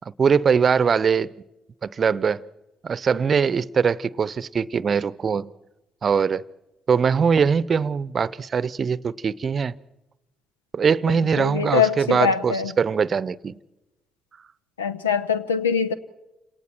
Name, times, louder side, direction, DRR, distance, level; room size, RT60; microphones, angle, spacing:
voice 1, 0.2-1.3 1.8-2.4 2.8-5.5 6.0-6.4 6.9-9.8 10.7-13.6, right 6 dB, 45° right, 0.7 m, -22 dB
voice 2, 11.1-12.7 14.8-15.9, left 7 dB, 90° left, 0.8 m, -23 dB
29.0 x 27.0 x 4.5 m
figure-of-eight pair, 45°, 0 cm